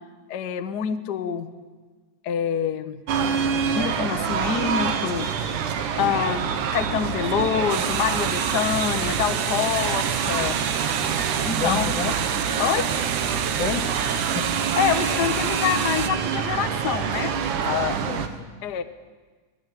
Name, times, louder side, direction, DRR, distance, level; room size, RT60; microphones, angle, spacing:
voice 1, 0.3-1.5 2.2-3.0 3.7-5.3 6.0-10.6 11.4-12.0 12.6-12.9 14.8-17.3 18.6-18.8, left 8 dB, 55° left, 9 dB, 1.2 m, -26 dB
sound 1, 3.1-18.3, right 7 dB, 80° right, 2.9 m, -26 dB
sound 2, 7.7-16.1, right 8 dB, 65° right, 1.3 m, -30 dB
voice 2, 11.6-12.1 13.3-13.9 14.4-14.5 17.7-18.5, left 7 dB, 85° left, 6 dB, 3.2 m, -29 dB
24.0 x 19.0 x 9.2 m, 1.4 s
omnidirectional pair, 3.5 m